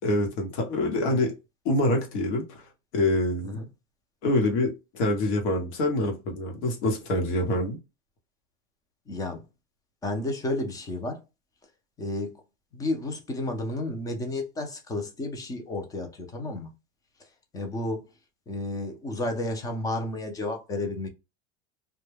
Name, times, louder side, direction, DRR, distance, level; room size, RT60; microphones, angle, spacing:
voice 1, 0.0-1.3 1.6-2.7 2.9-3.6 4.2-7.8, left 1 dB, 85° left, 1.0 m, -26 dB
voice 2, 9.1-9.4 10.0-11.2 12.0-12.3 12.7-16.7 17.5-18.0 18.5-21.1, left 2 dB, 10° left, 0.3 m, -32 dB
2.2 x 2.1 x 3.1 m
supercardioid pair, 145°, 33 cm